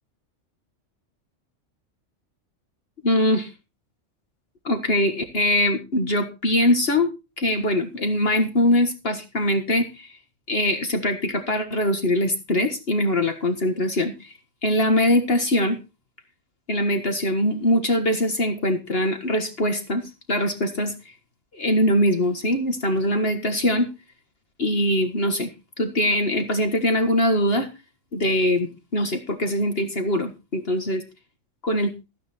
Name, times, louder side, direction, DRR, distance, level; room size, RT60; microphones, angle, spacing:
voice 1, 3.0-3.5 4.6-7.1 7.4-10.2 10.5-14.3 14.6-15.8 16.7-21.1 21.5-23.9 24.6-25.5 25.8-27.7 28.1-31.0 31.6-31.9, left 1 dB, 50° left, 6 dB, 1.9 m, -22 dB
14.5 x 9.7 x 4.3 m, 0.29 s
omnidirectional pair, 1.3 m